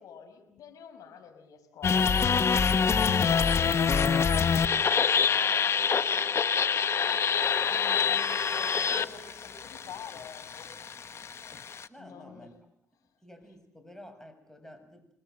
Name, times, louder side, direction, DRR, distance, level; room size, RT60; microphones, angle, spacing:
voice 1, 0.0-2.3 2.8-6.2 7.3-10.8 12.0-12.5, left 7 dB, 70° left, 5 dB, 5.6 m, -47 dB
sound 1, 1.8-11.9, left 6 dB, 45° left, 1.2 m, -26 dB
voice 2, 11.9-12.5 13.2-15.1, left 1 dB, 5° left, 7 dB, 7.3 m, -50 dB
26.5 x 20.5 x 7.9 m, 0.75 s
supercardioid pair, 70°, 6 cm